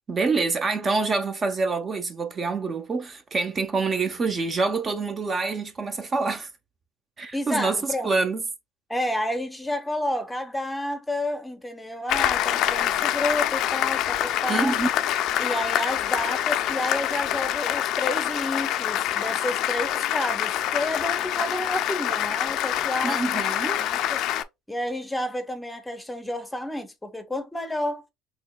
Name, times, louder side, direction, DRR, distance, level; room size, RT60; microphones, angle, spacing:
voice 1, 0.1-6.5 7.2-8.4 14.5-14.9 23.0-23.8, right 4 dB, 35° right, 0.7 m, -26 dB
voice 2, 7.3-8.1 8.9-14.8 15.4-23.4 23.8-24.2 24.7-28.0, left 1 dB, 10° left, 0.7 m, -30 dB
Applause, 12.1-24.4, left 12 dB, 65° left, 0.4 m, -26 dB
4.3 x 3.0 x 2.3 m
supercardioid pair, 95°, 0 cm